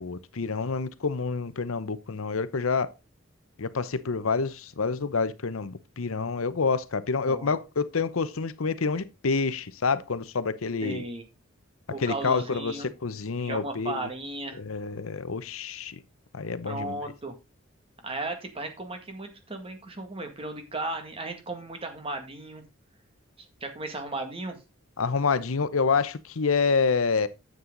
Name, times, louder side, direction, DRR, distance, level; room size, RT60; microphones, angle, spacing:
voice 1, 0.0-2.9 3.6-11.0 12.0-14.1 14.6-16.0 16.3-17.0 25.0-27.3, left 4 dB, 85° left, 0.8 m, -28 dB
voice 2, 7.2-7.6 10.8-11.3 11.9-12.9 13.4-14.6 16.7-17.3 18.0-22.6 23.6-24.6, right 2 dB, 30° right, 1.9 m, -35 dB
9.7 x 7.7 x 3.8 m
head